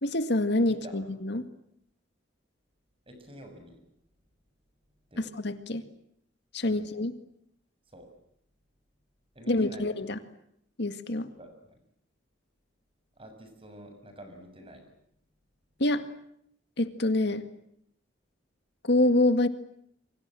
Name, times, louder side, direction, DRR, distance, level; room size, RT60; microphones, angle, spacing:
voice 1, 0.0-1.4 5.2-5.8 6.5-7.1 9.5-10.2 10.8-11.3 15.8-16.1 16.8-17.5 18.8-19.5, left 2 dB, 60° left, 9 dB, 2.0 m, -26 dB
voice 2, 0.7-1.0 3.1-3.8 5.1-5.3 6.6-6.9 7.9-8.1 9.4-9.8 11.1-11.8 13.2-14.8, equal, 30° right, 6 dB, 6.9 m, -48 dB
28.5 x 24.5 x 7.7 m, 0.73 s
head